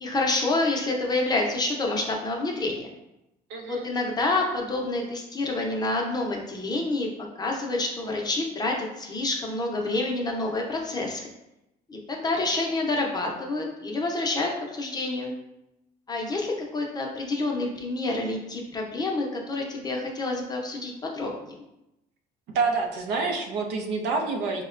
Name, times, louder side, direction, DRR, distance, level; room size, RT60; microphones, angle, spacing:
voice 1, 0.0-2.9 3.7-7.1 7.4-11.2 11.9-15.3 16.1-21.6, left 2 dB, 25° left, 0 dB, 0.6 m, -28 dB
voice 2, 3.5-3.9 12.5-12.8 22.5-24.6, right 4 dB, 85° right, 3 dB, 0.5 m, -28 dB
4.1 x 2.1 x 2.4 m, 0.88 s
cardioid pair, 110°, 17 cm